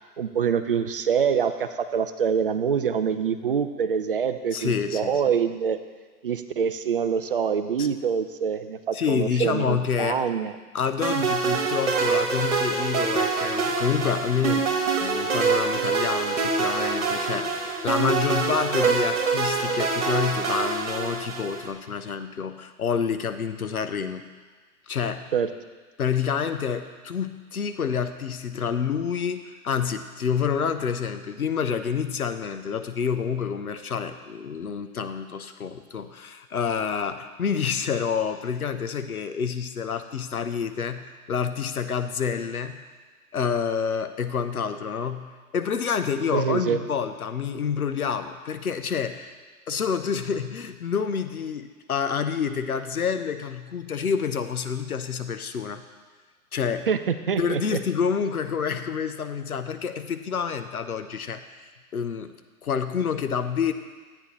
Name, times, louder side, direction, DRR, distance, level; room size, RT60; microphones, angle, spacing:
voice 1, 0.2-5.8 6.2-10.5 25.3-25.5 46.3-46.8 56.9-57.8, right 7 dB, 40° right, 9 dB, 0.5 m, -25 dB
voice 2, 4.5-5.2 7.8-7.9 8.9-10.2 10.7-24.3 24.9-25.3 26.0-42.8 43.3-49.4 49.7-55.8 56.5-56.9 57.4-61.7 61.9-62.3 62.6-63.7, left 6 dB, 70° left, 9 dB, 0.8 m, -28 dB
sound 1, 11.0-21.7, right 4 dB, 55° right, 1.6 m, -25 dB
12.5 x 8.6 x 3.2 m, 1.4 s
figure-of-eight pair, 130°, 45 cm